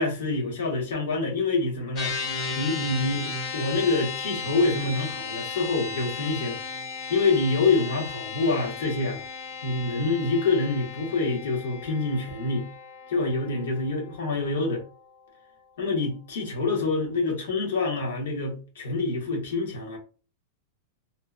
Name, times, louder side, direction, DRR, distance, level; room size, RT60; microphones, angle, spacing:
voice 1, 0.0-2.1 2.5-6.6 7.1-9.2 9.6-12.7 13.1-14.8 15.8-20.0, left 3 dB, 75° left, 1.1 m, -26 dB
sound 1, 2.0-15.5, left 5 dB, 20° left, 0.5 m, -36 dB
2.8 x 2.2 x 2.4 m
supercardioid pair, 175°, 0 cm